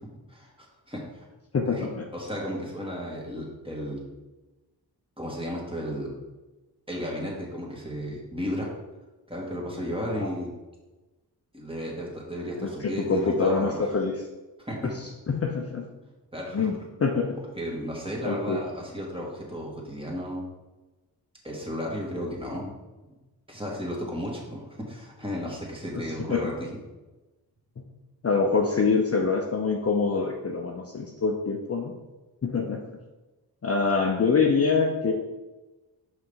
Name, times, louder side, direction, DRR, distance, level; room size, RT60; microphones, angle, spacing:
voice 1, 0.3-1.2 1.7-1.9 2.1-4.0 5.2-6.1 6.9-8.7 9.3-10.5 11.5-13.9 14.7-14.9 16.3-16.7 17.6-20.4 21.4-22.7 23.0-23.1 23.5-26.7, equal, 15° right, -3 dB, 1.9 m, -34 dB
voice 2, 1.5-2.1 10.2-10.3 12.6-14.1 15.3-15.9 16.5-16.7 17.0-17.3 18.2-18.6 25.9-26.0 26.3-26.5 27.8-27.9 28.2-32.0 32.4-32.8 33.6-35.1, left 4 dB, 35° left, 1 dB, 0.7 m, -25 dB
5.4 x 3.4 x 5.6 m, 1.1 s
cardioid pair, 70°, 42 cm